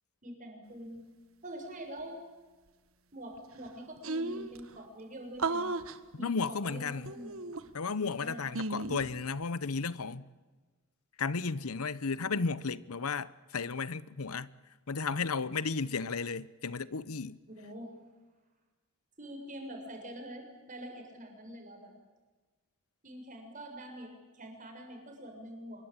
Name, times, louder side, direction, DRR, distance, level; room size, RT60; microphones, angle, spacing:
voice 1, 0.2-1.0 1.4-2.2 3.1-5.7 6.1-7.4 8.0-8.5 17.5-17.9 19.2-21.9 23.0-25.9, right 1 dB, 35° right, 6.9 m, -45 dB
sound 1, 3.4-3.5 3.7-3.8 4.0-4.6 5.4-6.0 7.1-7.9 8.5-9.1, right 3 dB, 70° right, 1.6 m, -34 dB
voice 2, 6.2-7.1 7.7-10.3 11.2-14.5 14.9-17.4, left 4 dB, 85° left, 0.9 m, -34 dB
26.0 x 22.5 x 8.9 m
head